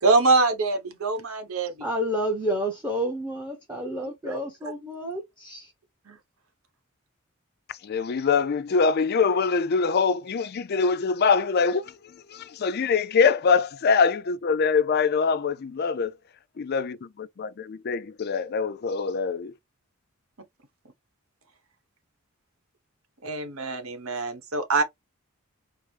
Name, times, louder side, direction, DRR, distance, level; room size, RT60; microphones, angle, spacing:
voice 1, 0.0-1.9 4.3-4.4 6.0-6.2 23.2-24.8, right 3 dB, 80° right, 1.0 m, -24 dB
voice 2, 1.8-5.7, equal, 10° right, 0.8 m, -30 dB
voice 3, 7.8-11.9 12.3-16.1 16.6-19.5, left 5 dB, 50° left, 0.4 m, -24 dB
4.6 x 2.0 x 3.2 m
head